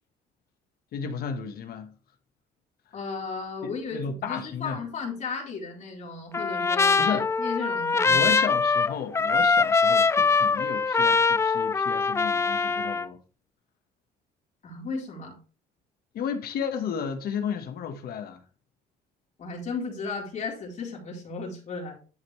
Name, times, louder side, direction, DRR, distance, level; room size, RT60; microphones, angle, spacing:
voice 1, 0.9-1.9 3.6-4.8 7.0-7.3 8.1-13.2 16.1-18.4, left 7 dB, 65° left, 1.3 m, -33 dB
voice 2, 2.9-8.3 14.6-15.4 19.4-21.9, left 4 dB, 45° left, 3.9 m, -35 dB
Trumpet, 6.3-13.1, left 4 dB, 15° left, 0.3 m, -23 dB
11.5 x 5.2 x 3.2 m
cardioid pair, 110°, 17 cm